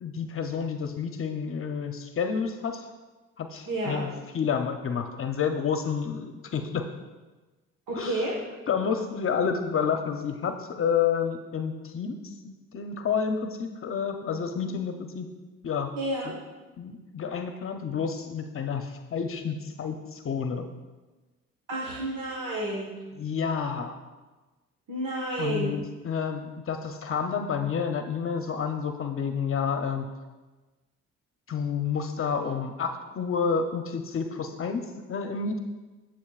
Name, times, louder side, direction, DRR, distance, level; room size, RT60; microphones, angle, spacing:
voice 1, 0.0-2.9 3.4-4.1 4.3-6.8 7.9-8.3 8.7-15.3 15.6-15.9 16.2-16.4 16.8-20.7 23.2-24.0 25.4-30.1 31.5-35.6, left 6 dB, 45° left, 6 dB, 0.7 m, -30 dB
voice 2, 3.7-4.1 7.9-8.3 14.7-14.8 16.0-16.3 21.7-23.0 24.9-25.7, right 1 dB, 85° right, -3 dB, 1.5 m, -30 dB
14.0 x 7.4 x 2.4 m, 1.2 s
cardioid pair, 90°, 30 cm